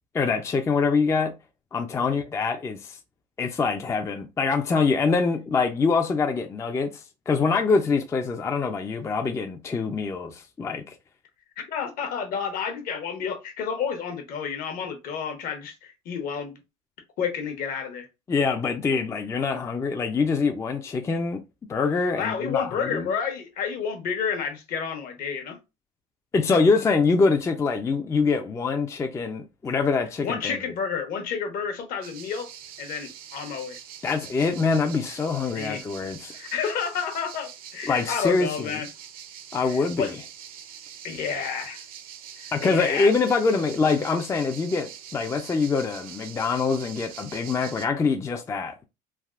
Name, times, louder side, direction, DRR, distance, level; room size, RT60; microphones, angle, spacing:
voice 1, 0.1-1.3 1.7-3.0 3.4-10.9 18.3-21.4 21.7-23.1 26.3-30.6 34.0-36.3 37.8-38.8 39.5-40.1 42.5-48.9, left 4 dB, 15° left, 0.4 m, -24 dB
voice 2, 11.7-16.6 17.2-18.1 22.2-25.6 30.2-32.5 32.8-33.8 35.5-35.8 36.3-38.9 39.6-40.2 41.0-41.8 42.4-43.1, left 6 dB, 55° left, 0.9 m, -30 dB
sound 1, 32.0-47.9, right 9 dB, 55° right, 0.5 m, -44 dB
3.3 x 2.4 x 2.3 m
cardioid pair, 120°, 17 cm